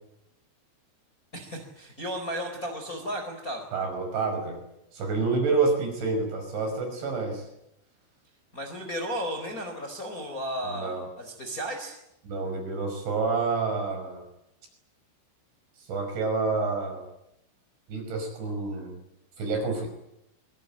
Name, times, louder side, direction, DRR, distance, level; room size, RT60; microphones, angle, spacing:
voice 1, 1.3-3.7 8.5-12.0, equal, 20° left, 4 dB, 4.1 m, -34 dB
voice 2, 3.7-4.6 4.9-7.5 10.6-11.1 12.2-14.2 15.9-17.0 17.9-19.0 19.4-19.9, right 4 dB, 65° right, 4 dB, 7.9 m, -28 dB
24.5 x 24.5 x 8.8 m, 0.82 s
omnidirectional pair, 5.8 m